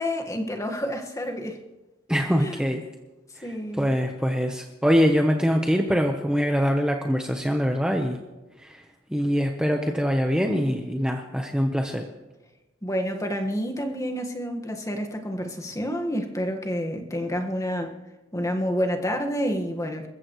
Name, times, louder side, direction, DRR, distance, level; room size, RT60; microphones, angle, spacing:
voice 1, 0.0-1.6 2.4-2.7 3.4-3.9 12.8-17.9 18.3-20.1, equal, 15° left, 4 dB, 1.6 m, -29 dB
voice 2, 2.1-2.8 3.4-3.5 3.8-8.2 8.6-8.8 9.1-12.1, equal, 5° right, 3 dB, 0.9 m, -23 dB
27.0 x 15.0 x 3.1 m, 1.1 s
head